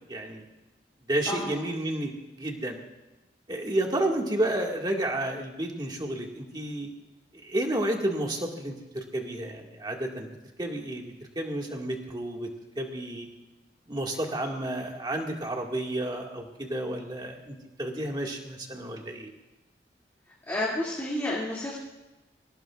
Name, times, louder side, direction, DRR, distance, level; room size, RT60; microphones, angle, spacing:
voice 1, 0.1-0.4 1.1-2.1 2.4-2.8 3.5-6.9 7.3-10.3 10.6-12.5 12.8-13.3 13.9-19.3, right 1 dB, 25° right, 1 dB, 2.0 m, -31 dB
voice 2, 1.3-1.6 20.5-21.8, left 1 dB, 15° left, -6 dB, 2.6 m, -30 dB
24.0 x 17.5 x 2.5 m, 1.0 s
head